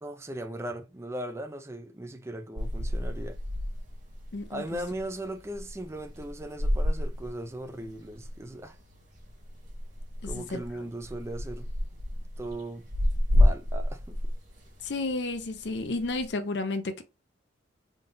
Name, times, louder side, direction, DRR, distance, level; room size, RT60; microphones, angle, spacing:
voice 1, 0.0-3.4 4.5-8.8 10.2-11.7 12.4-12.8 13.3-14.2, right 1 dB, 15° right, 0.5 m, -38 dB
sound 1, 2.6-16.3, left 1 dB, 40° right, 1.5 m, -30 dB
voice 2, 4.3-4.8 10.2-10.6 14.8-17.0, left 2 dB, 65° left, 0.6 m, -32 dB
3.8 x 2.3 x 3.8 m
head